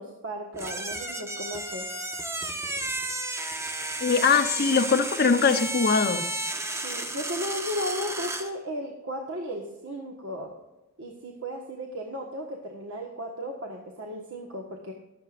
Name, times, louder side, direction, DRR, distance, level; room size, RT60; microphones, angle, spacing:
voice 1, 0.0-1.9 6.8-10.5 11.0-14.9, equal, 70° right, 1 dB, 1.5 m, -35 dB
sound 1, 0.5-8.5, right 2 dB, 15° right, 0.9 m, -33 dB
voice 2, 4.0-6.2, left 5 dB, 50° left, 7 dB, 0.8 m, -22 dB
22.5 x 7.8 x 2.5 m, 1.0 s
head